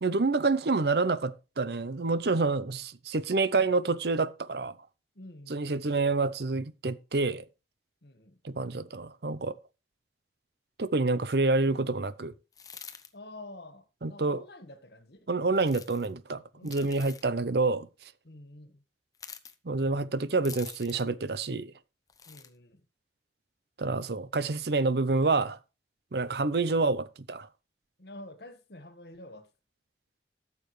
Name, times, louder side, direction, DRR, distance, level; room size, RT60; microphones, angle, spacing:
voice 1, 0.0-4.7 5.5-7.4 8.4-9.5 10.8-12.3 14.0-14.4 15.3-17.9 19.6-21.7 23.8-25.6 26.1-27.5, right 3 dB, 65° right, 0.7 m, -28 dB
voice 2, 5.1-5.6 8.0-8.4 13.1-15.3 16.5-17.0 18.2-18.8 22.3-22.8 28.0-29.5, left 1 dB, 65° left, 1.7 m, -48 dB
sound 1, 12.5-13.1 15.6-16.1 16.6-17.3 19.1-19.5 20.4-21.1 22.1-22.5, left 7 dB, 20° left, 0.9 m, -46 dB
14.0 x 7.0 x 3.3 m
head